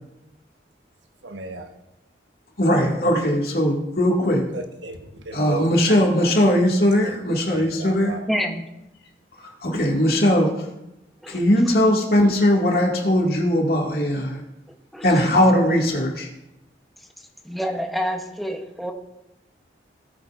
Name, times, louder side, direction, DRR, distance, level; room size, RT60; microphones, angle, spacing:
voice 1, 1.2-1.7 4.5-5.9 7.0-7.2 7.5-8.3, right 4 dB, 90° right, 5 dB, 1.2 m, -34 dB
voice 2, 2.6-4.4 5.3-8.2 9.4-10.7 11.3-14.4 15.0-16.3, left 1 dB, 55° left, 0 dB, 2.1 m, -19 dB
voice 3, 8.3-8.6 11.2-11.4 14.9-15.1 17.4-18.9, equal, ahead, 2 dB, 0.8 m, -27 dB
18.5 x 8.5 x 2.5 m, 0.91 s
head